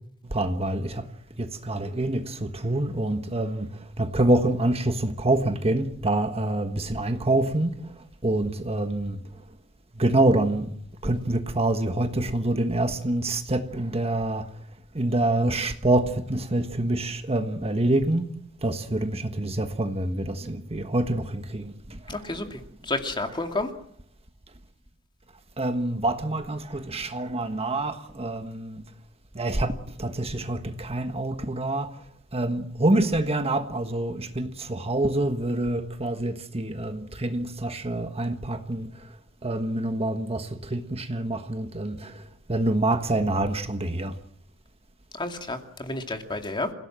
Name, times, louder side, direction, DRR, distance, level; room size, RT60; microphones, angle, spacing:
voice 1, 0.3-1.1 1.4-3.7 4.0-7.7 8.2-9.2 10.0-10.7 11.0-14.4 14.9-18.3 18.6-22.0 25.6-28.8 29.3-31.9 32.3-38.9 39.4-42.2 42.5-44.1, right 1 dB, 25° right, 1.4 m, -26 dB
voice 2, 22.1-23.7 45.1-46.7, left 2 dB, 20° left, 2.5 m, -31 dB
28.0 x 17.0 x 7.6 m
head